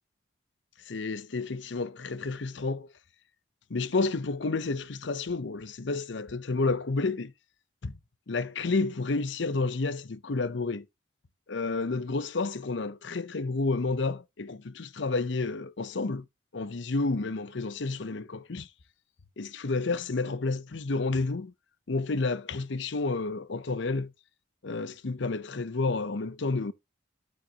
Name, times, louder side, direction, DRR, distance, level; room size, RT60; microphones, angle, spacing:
voice 1, 0.9-2.9 3.7-7.3 7.8-7.9 8.3-10.9 11.5-16.2 16.5-18.7 19.4-21.5 21.9-24.1 24.6-26.7, left 3 dB, 65° left, 0.7 m, -30 dB
12.0 x 5.4 x 2.8 m
head